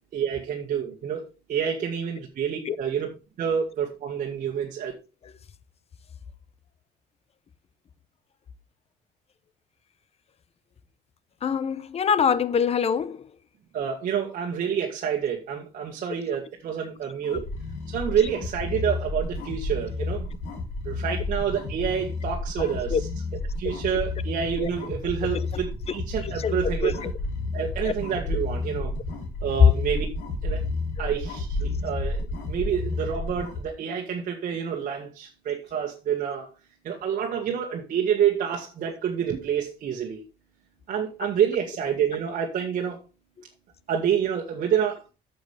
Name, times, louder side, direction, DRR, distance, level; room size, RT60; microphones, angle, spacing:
voice 1, 0.1-1.2 1.5-3.1 3.4-4.9 13.7-17.5 17.9-20.3 20.8-23.1 23.6-27.1 27.5-28.9 29.4-30.1 30.4-30.6 31.0-32.2 32.5-36.5 36.8-40.2 40.9-43.0 43.9-45.1, right 8 dB, 55° right, 1.7 m, -28 dB
voice 2, 11.4-13.2 22.9-23.0 24.6-24.7 26.4-26.9, left 7 dB, 35° left, 0.7 m, -24 dB
sound 1, 17.2-33.6, left 2 dB, 85° left, 3.0 m, -31 dB
10.5 x 7.0 x 3.4 m
cardioid pair, 110°, 17 cm